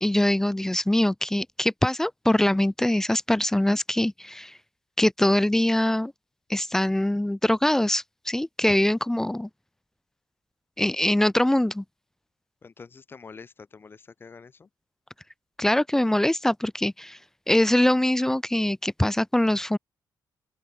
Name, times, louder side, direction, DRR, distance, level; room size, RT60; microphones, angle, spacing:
voice 1, 0.0-4.5 5.0-6.1 6.5-9.5 10.8-11.8 15.6-17.2 17.5-19.8, left 1 dB, 5° left, 0.6 m, -23 dB
voice 2, 12.6-14.7, left 5 dB, 25° left, 4.2 m, -46 dB
open air
wide cardioid pair, 175°, 8 cm